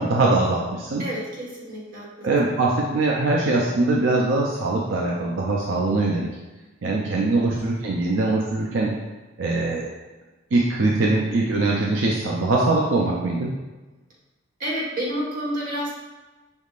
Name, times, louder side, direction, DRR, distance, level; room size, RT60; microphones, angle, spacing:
voice 1, 0.0-1.0 2.2-6.3 6.8-8.9 9.4-9.9 10.5-13.5, right 2 dB, 80° right, -2 dB, 0.5 m, -22 dB
voice 2, 1.0-2.5 7.2-7.3 14.6-15.9, equal, 50° right, -5 dB, 1.3 m, -30 dB
5.3 x 3.5 x 2.4 m, 1.1 s
head